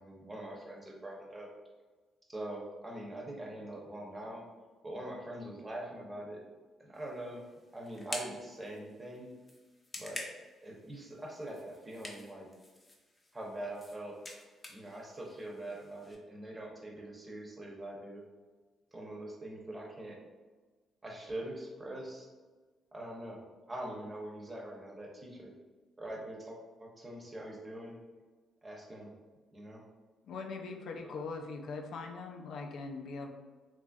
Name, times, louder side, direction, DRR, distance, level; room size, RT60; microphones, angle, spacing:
voice 1, 0.0-1.5 2.3-4.4 4.8-6.4 6.8-7.4 7.7-9.3 10.0-10.2 10.6-12.5 13.3-14.2 14.7-18.2 18.9-20.2 21.0-22.3 22.9-23.4 23.7-25.5 26.0-28.0 28.6-29.1 29.5-29.8, right 1 dB, 20° right, -1 dB, 0.7 m, -43 dB
sound 1, 6.9-16.1, left 1 dB, 20° left, 0.5 m, -49 dB
voice 2, 30.2-33.3, left 4 dB, 70° left, 3 dB, 0.3 m, -41 dB
2.9 x 2.5 x 2.3 m, 1.3 s
cardioid pair, 90°, 0 cm